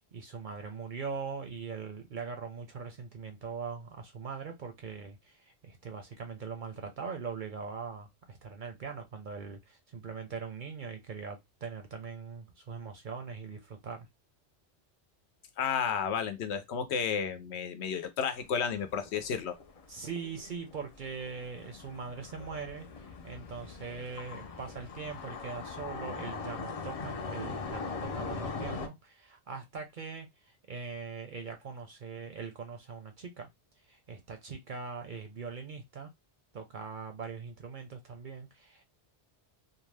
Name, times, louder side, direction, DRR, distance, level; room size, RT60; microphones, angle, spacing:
voice 1, 0.1-14.1 19.9-30.3 30.7-33.5 33.9-36.1 36.5-38.8, right 5 dB, 55° right, 0.6 m, -41 dB
voice 2, 15.6-19.6, left 7 dB, 70° left, 0.8 m, -32 dB
sound 1, 18.4-28.9, left 4 dB, 55° left, 0.4 m, -41 dB
2.7 x 2.1 x 3.2 m
omnidirectional pair, 1.2 m